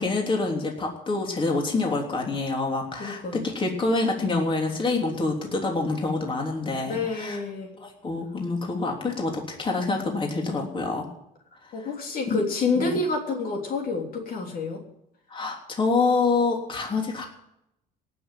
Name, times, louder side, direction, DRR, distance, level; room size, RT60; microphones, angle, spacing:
voice 1, 0.0-7.4 7.8-11.1 11.8-11.9 12.3-12.4 12.7-13.0 15.3-17.3, left 3 dB, 30° left, 1 dB, 3.3 m, -26 dB
voice 2, 3.0-3.4 6.9-7.7 11.7-14.8, left 3 dB, 60° left, 1 dB, 3.2 m, -28 dB
18.0 x 6.9 x 9.3 m, 0.81 s
cardioid pair, 110°, 17 cm